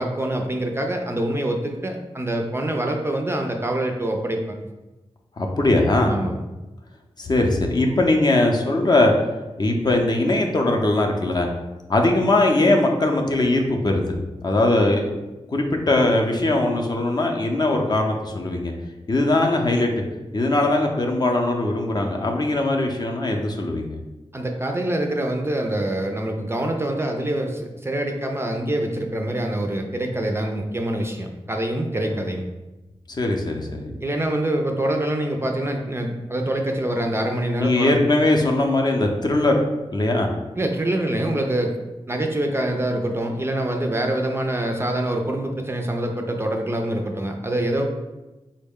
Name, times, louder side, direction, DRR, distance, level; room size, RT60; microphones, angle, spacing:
voice 1, 0.0-4.6 6.0-6.4 24.3-32.4 34.0-38.0 40.6-41.8 42.1-47.8, right 1 dB, 25° right, 3 dB, 0.4 m, -25 dB
voice 2, 5.4-6.2 7.2-9.1 9.6-11.5 11.9-14.1 14.4-15.1 15.5-18.7 19.1-19.9 20.3-24.0 32.0-32.2 33.1-34.0 37.6-39.6 39.9-40.3, left 2 dB, 40° left, 2 dB, 0.5 m, -20 dB
3.8 x 2.1 x 3.5 m, 1.1 s
wide cardioid pair, 85°, 11 cm